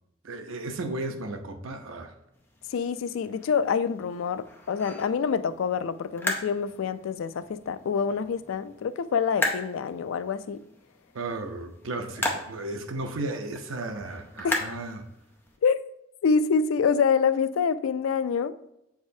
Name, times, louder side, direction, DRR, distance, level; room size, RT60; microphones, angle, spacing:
voice 1, 0.2-2.1 11.1-15.0, right 2 dB, 85° right, 0.7 m, -34 dB
sound 1, 2.3-15.6, left 1 dB, 10° left, 0.6 m, -37 dB
voice 2, 2.7-10.6 14.4-14.6 15.6-15.8 16.2-18.5, left 6 dB, 80° left, 0.3 m, -26 dB
7.3 x 4.8 x 2.7 m
head